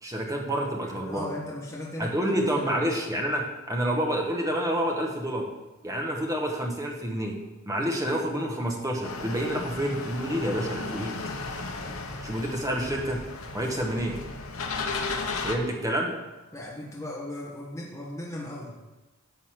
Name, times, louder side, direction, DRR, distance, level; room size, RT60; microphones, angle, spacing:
voice 1, 0.0-1.3 2.0-5.5 5.8-7.4 7.7-11.1 12.2-13.2 13.5-14.2 15.4-16.1, equal, 15° right, 0 dB, 1.3 m, -28 dB
voice 2, 0.8-2.8 16.5-18.8, left 1 dB, 15° left, -4 dB, 1.1 m, -37 dB
sound 1, 9.0-15.6, left 3 dB, 75° left, 1.0 m, -34 dB
11.0 x 4.1 x 7.5 m, 1.1 s
head